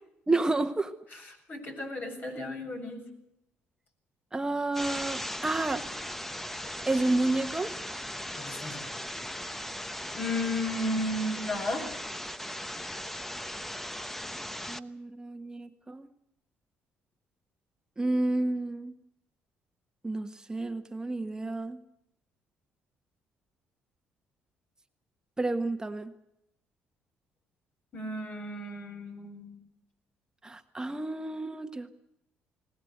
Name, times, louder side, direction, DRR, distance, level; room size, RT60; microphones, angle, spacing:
voice 1, 0.3-0.9 4.3-5.9 6.8-7.8 14.7-16.1 18.0-18.9 20.0-21.8 25.4-26.1 30.4-31.9, right 2 dB, 15° right, 7 dB, 1.4 m, -30 dB
voice 2, 1.5-3.1 8.4-8.8 10.1-11.9 27.9-29.6, left 1 dB, 45° left, 3 dB, 7.5 m, -34 dB
sound 1, 4.7-14.8, equal, 5° left, 1.0 m, -38 dB
20.5 x 19.5 x 8.0 m, 0.81 s
supercardioid pair, 80°, 4 cm